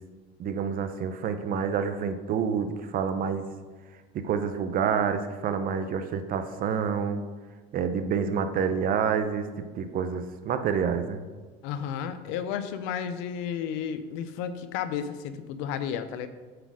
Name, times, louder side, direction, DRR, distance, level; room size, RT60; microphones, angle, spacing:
voice 1, 0.4-3.4 4.1-7.2 7.7-9.5 9.7-11.2, right 6 dB, 45° right, 9 dB, 0.7 m, -28 dB
voice 2, 11.6-16.3, left 8 dB, 80° left, 11 dB, 0.6 m, -32 dB
7.7 x 4.1 x 4.8 m, 1.3 s
cardioid pair, 120°, 20 cm